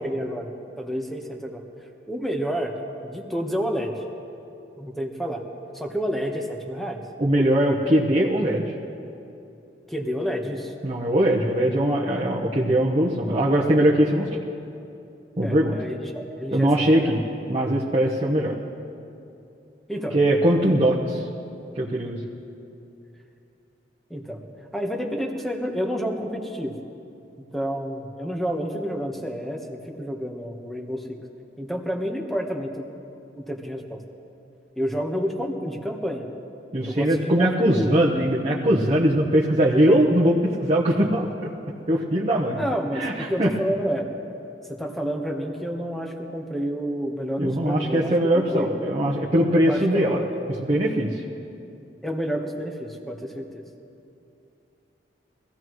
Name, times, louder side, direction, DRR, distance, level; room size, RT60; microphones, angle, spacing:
voice 1, 0.0-0.5 0.8-1.6 2.1-2.7 3.0-3.9 4.8-5.4 5.7-7.0 9.9-10.7 15.4-17.1 19.9-20.2 20.6-21.0 24.1-24.4 24.7-26.7 27.5-31.2 31.6-32.8 33.3-34.0 34.8-36.2 36.9-37.9 42.6-44.1 44.7-48.7 49.7-50.3 52.0-53.6, equal, ahead, 2 dB, 1.2 m, -29 dB
voice 2, 7.2-8.7 10.8-14.4 15.4-15.8 16.5-17.2 17.5-18.6 20.1-21.3 21.7-22.2 36.7-41.5 41.9-42.6 42.9-43.5 47.4-50.2 50.6-51.2, right 1 dB, 35° right, -4 dB, 1.0 m, -21 dB
23.0 x 15.5 x 3.2 m, 2.8 s
head